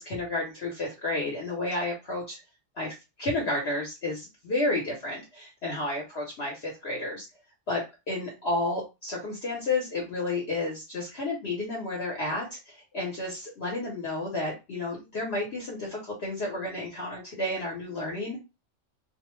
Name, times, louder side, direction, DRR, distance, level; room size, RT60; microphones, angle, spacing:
voice 1, 0.0-2.4 2.8-7.3 7.7-18.4, left 2 dB, 55° left, -3 dB, 1.0 m, -31 dB
2.5 x 2.1 x 3.0 m, 0.26 s
omnidirectional pair, 1.3 m